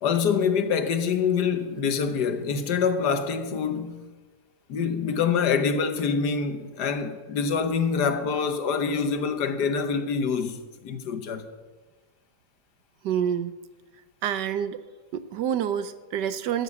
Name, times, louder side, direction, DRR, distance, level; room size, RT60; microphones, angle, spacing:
voice 1, 0.0-4.0 4.7-11.5, left 6 dB, 65° left, 1.5 m, -25 dB
voice 2, 13.0-13.5 14.2-14.8 15.1-16.6, right 9 dB, 75° right, 1.3 m, -27 dB
14.0 x 7.5 x 8.3 m
omnidirectional pair, 2.0 m